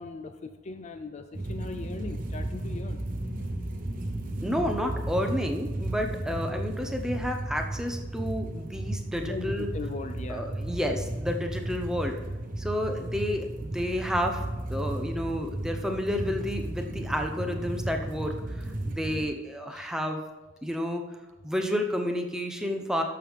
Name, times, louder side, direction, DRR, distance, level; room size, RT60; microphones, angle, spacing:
voice 1, 0.0-3.0 9.2-10.5 19.7-19.9, left 3 dB, 40° left, 8 dB, 0.4 m, -39 dB
sound 1, 1.3-19.3, right 1 dB, 45° right, 1.0 m, -34 dB
voice 2, 4.4-9.7 10.3-12.2 12.6-14.4 14.7-20.2 20.6-21.0 21.4-23.0, equal, 5° right, 3 dB, 0.8 m, -30 dB
12.0 x 6.5 x 3.6 m, 1.2 s
head